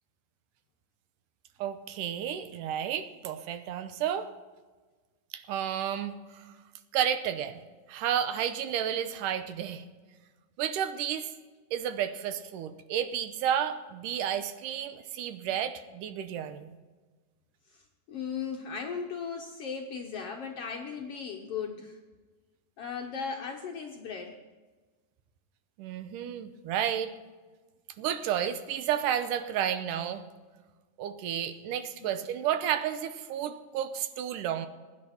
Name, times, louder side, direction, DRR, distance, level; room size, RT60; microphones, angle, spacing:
voice 1, 1.6-4.3 5.3-6.5 6.9-7.6 7.9-9.9 10.6-11.3 11.7-16.7 25.8-27.1 28.0-30.2 31.0-34.7, right 9 dB, 80° right, 10 dB, 2.3 m, -31 dB
voice 2, 17.7-22.0 22.8-24.4 32.0-32.2, left 6 dB, 70° left, 2 dB, 1.4 m, -37 dB
21.0 x 9.7 x 4.3 m, 1.3 s
omnidirectional pair, 3.9 m